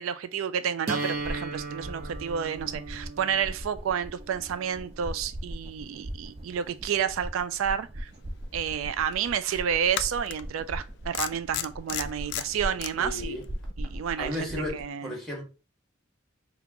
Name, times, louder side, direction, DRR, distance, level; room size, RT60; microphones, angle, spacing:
voice 1, 0.0-8.1 8.5-13.4 13.8-15.1, right 8 dB, 90° right, 0.4 m, -30 dB
sound 1, 0.9-6.8, right 3 dB, 50° right, 0.8 m, -38 dB
sound 2, 1.1-14.8, equal, 30° right, 0.5 m, -39 dB
sound 3, 8.5-8.6 9.9-10.4 11.1-12.9, left 11 dB, 60° left, 0.3 m, -32 dB
voice 2, 13.0-13.5 14.2-15.4, left 1 dB, ahead, 1.5 m, -34 dB
5.1 x 2.4 x 2.9 m
head